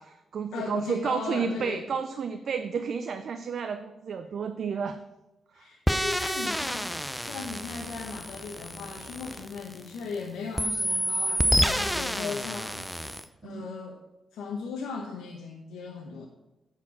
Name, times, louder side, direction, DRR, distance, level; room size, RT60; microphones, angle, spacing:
voice 1, 0.0-5.0 5.5-5.7 13.4-13.7, right 6 dB, 55° right, 8 dB, 0.5 m, -31 dB
voice 2, 0.5-1.9 5.5-13.2 13.4-14.0 14.3-16.3, left 4 dB, 90° left, 0 dB, 1.0 m, -37 dB
sound 1, 5.9-10.2 10.6-13.3, equal, ahead, 0.6 m, -29 dB
9.7 x 4.5 x 6.1 m, 1.0 s
cardioid pair, 95°, 0 cm